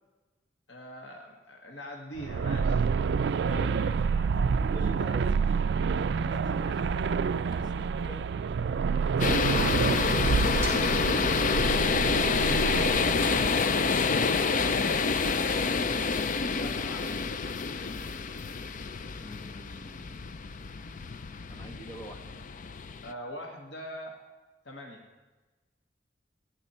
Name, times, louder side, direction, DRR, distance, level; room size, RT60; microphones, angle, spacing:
voice 1, 0.7-2.8 13.4-14.8 15.4-18.0 23.0-24.2 24.6-25.1, equal, 70° left, 0 dB, 1.7 m, -44 dB
sound 1, 2.2-13.5, right 5 dB, 65° right, 0.4 m, -28 dB
voice 2, 3.4-5.5 6.1-7.1 7.5-8.4 19.2-20.2 21.5-22.3, equal, 25° left, 3 dB, 1.4 m, -46 dB
sound 2, 9.2-23.1, left 5 dB, 45° left, 0.5 m, -28 dB
sound 3, 10.6-13.5, right 2 dB, 15° right, 4.0 m, -46 dB
27.0 x 10.0 x 4.4 m, 1.2 s
head